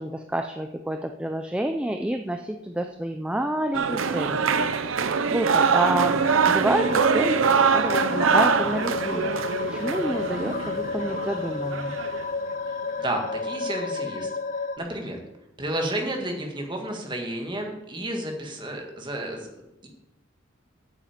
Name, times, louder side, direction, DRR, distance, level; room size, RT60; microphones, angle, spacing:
voice 1, 0.0-4.4 4.8-9.4 9.7-12.0, right 1 dB, 5° right, 5 dB, 0.5 m, -29 dB
sound 1, 3.7-12.3, right 5 dB, 80° right, 0.7 m, -24 dB
sound 2, 6.7-14.8, left 4 dB, 40° left, 0.5 m, -31 dB
voice 2, 13.0-14.3 14.8-15.2 15.6-19.5 19.8-19.9, right 1 dB, 25° right, 2 dB, 1.8 m, -31 dB
9.1 x 7.1 x 7.4 m, 0.93 s
head